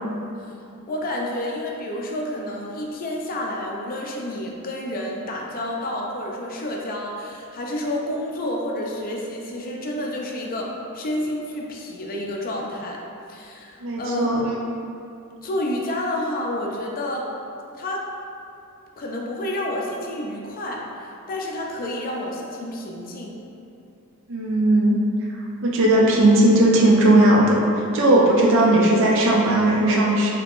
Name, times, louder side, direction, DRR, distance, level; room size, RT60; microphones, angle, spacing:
voice 1, 0.9-13.0 13.3-14.3 15.4-17.3 17.7-18.1 19.0-23.4, left 1 dB, 40° left, -1 dB, 0.4 m, -29 dB
voice 2, 13.8-14.4 24.3-25.0 25.6-30.3, right 1 dB, 60° right, -3 dB, 0.5 m, -17 dB
3.5 x 2.8 x 2.4 m, 2.6 s
head